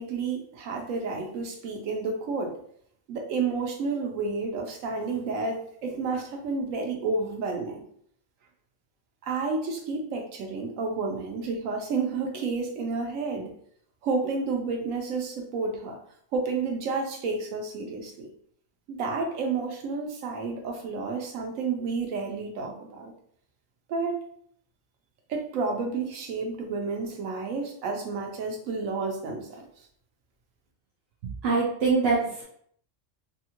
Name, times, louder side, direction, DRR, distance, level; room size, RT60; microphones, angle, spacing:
voice 1, 0.0-2.5 3.1-7.8 9.2-13.5 14.0-16.0 16.3-18.3 18.9-23.1 23.9-24.2 25.3-29.6, right 4 dB, 85° right, 2 dB, 1.0 m, -30 dB
voice 2, 31.4-32.4, right 4 dB, 60° right, -5 dB, 0.8 m, -23 dB
2.8 x 2.6 x 2.8 m, 0.65 s
omnidirectional pair, 1.3 m